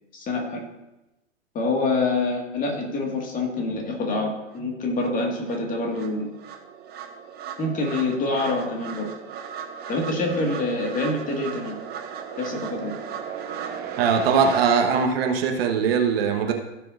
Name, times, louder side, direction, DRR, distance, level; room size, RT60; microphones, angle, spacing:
voice 1, 0.1-0.6 1.5-6.3 7.6-9.1 9.9-11.8 12.4-12.9, left 2 dB, 20° left, 1 dB, 1.9 m, -26 dB
sound 1, 4.5-4.6 5.0-14.6, right 7 dB, 25° right, 1.1 m, -36 dB
voice 2, 14.0-16.5, right 6 dB, 50° right, 3 dB, 1.3 m, -21 dB
16.5 x 6.7 x 2.6 m, 0.98 s
figure-of-eight pair, 110°, 37 cm